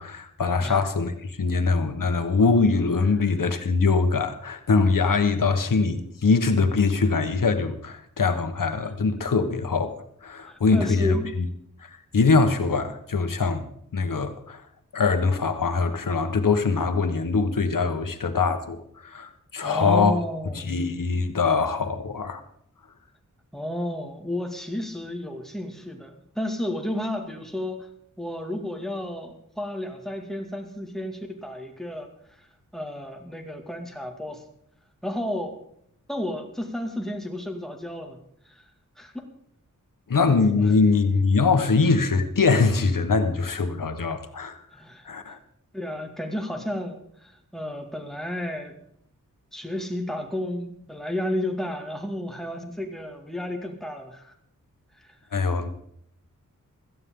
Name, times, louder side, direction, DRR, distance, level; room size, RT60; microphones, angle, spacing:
voice 1, 0.0-9.9 10.2-11.5 11.8-13.6 13.9-14.6 14.9-20.2 20.5-22.4 40.1-44.6 45.0-45.4 55.3-55.7, left 4 dB, 70° left, 8 dB, 1.4 m, -23 dB
voice 2, 10.5-11.3 19.6-20.8 23.5-27.9 28.2-32.1 32.7-34.4 35.0-35.6 36.1-38.2 38.5-38.6 39.0-39.1 44.7-45.1 45.7-48.8 49.5-54.3 55.0-55.1, left 1 dB, ahead, 3 dB, 2.3 m, -32 dB
16.5 x 14.0 x 3.8 m, 0.70 s
wide cardioid pair, 100°, 33 cm